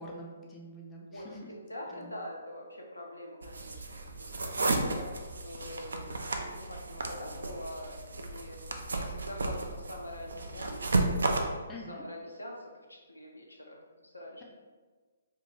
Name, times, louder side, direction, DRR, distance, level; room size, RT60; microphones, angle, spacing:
voice 1, 0.0-1.4 1.9-2.2 11.7-12.0, equal, 15° left, -3 dB, 0.5 m, -46 dB
voice 2, 1.1-5.1 5.4-8.6 8.9-10.9 11.4-14.4, left 1 dB, 85° left, -1 dB, 0.6 m, -45 dB
sound 1, 3.4-11.4, right 2 dB, 70° right, 0.4 m, -33 dB
2.6 x 2.2 x 3.7 m, 1.4 s
figure-of-eight pair, 130°, 0 cm